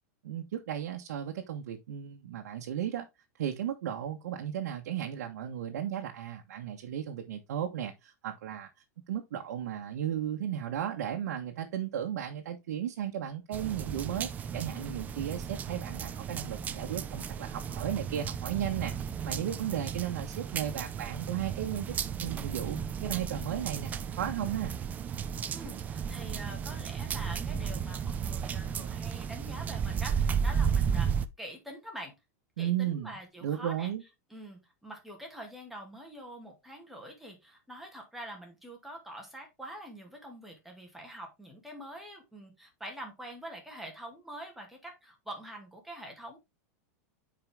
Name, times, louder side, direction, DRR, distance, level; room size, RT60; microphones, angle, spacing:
voice 1, 0.2-3.1 3.4-8.7 9.1-18.9 19.2-21.9 22.2-24.8 32.6-33.1 33.4-34.0, right 10 dB, 90° right, 1.3 m, -35 dB
sound 1, 13.5-31.3, right 7 dB, 20° right, 0.5 m, -34 dB
voice 2, 25.5-31.1 31.4-32.1 32.6-33.9 34.3-46.4, right 1 dB, ahead, 2.3 m, -45 dB
9.3 x 4.9 x 3.6 m
supercardioid pair, 155°, 9 cm